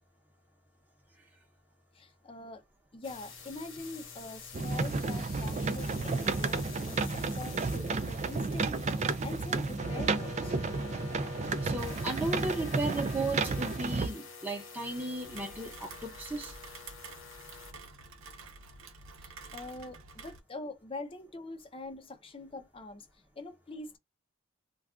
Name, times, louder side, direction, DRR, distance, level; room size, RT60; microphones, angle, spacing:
voice 1, 1.9-2.6 2.9-10.6 19.2-23.1 23.4-24.0, left 2 dB, 25° left, 0.5 m, -44 dB
sound 1, 3.0-17.7, left 4 dB, 60° left, 1.0 m, -47 dB
sound 2, 4.5-14.1, right 3 dB, 35° right, 0.3 m, -32 dB
voice 2, 11.6-16.5, right 2 dB, 10° right, 0.8 m, -35 dB
Rain, 15.2-20.4, right 4 dB, 75° right, 0.7 m, -49 dB
2.3 x 2.3 x 3.5 m
head